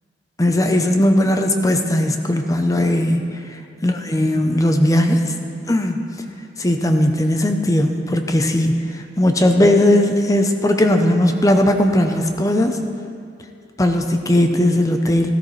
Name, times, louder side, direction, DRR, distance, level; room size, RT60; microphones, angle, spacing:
voice 1, 0.4-5.3 5.7-6.1 6.6-12.8 13.8-15.3, left 1 dB, 20° left, 5 dB, 0.7 m, -18 dB
13.5 x 12.5 x 3.2 m, 2.4 s
head